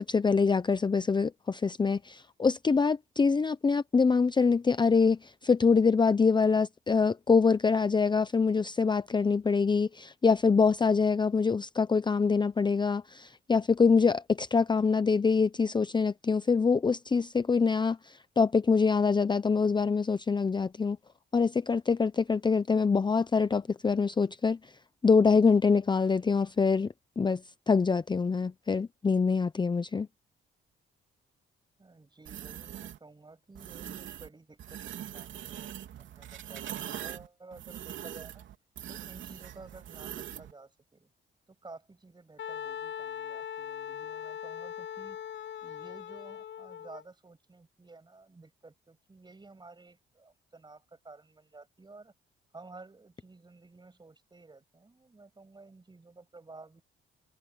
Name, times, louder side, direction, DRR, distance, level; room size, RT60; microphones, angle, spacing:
voice 1, 0.0-21.0 21.3-24.7 25.0-26.9 27.2-27.4 27.7-30.1, left 5 dB, 20° left, 0.7 m, -25 dB
voice 2, 31.8-38.5 38.9-41.1 41.5-45.2 45.6-52.1 52.5-56.8, right 3 dB, 20° right, 7.4 m, -53 dB
sound 1, 32.2-33.0 33.5-34.3 34.6-40.5, right 11 dB, 75° right, 3.4 m, -42 dB
Wind instrument woodwind instrument, 42.4-47.0, left 9 dB, 65° left, 0.9 m, -40 dB
cardioid pair, 90°, 20 cm